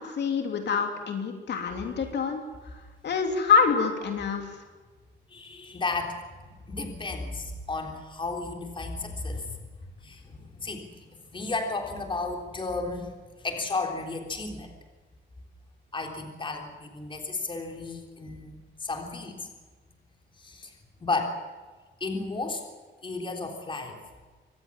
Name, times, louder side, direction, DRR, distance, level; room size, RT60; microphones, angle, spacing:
voice 1, 0.0-2.4 3.0-4.5, left 5 dB, 60° left, 4 dB, 3.1 m, -26 dB
voice 2, 5.3-9.6 10.0-13.1 13.4-14.7 15.9-19.5 20.4-20.7 21.0-21.4 22.0-22.6 23.0-24.0, left 3 dB, 25° left, 3 dB, 3.6 m, -33 dB
25.0 x 19.0 x 7.4 m, 1.4 s
wide cardioid pair, 170°, 20 cm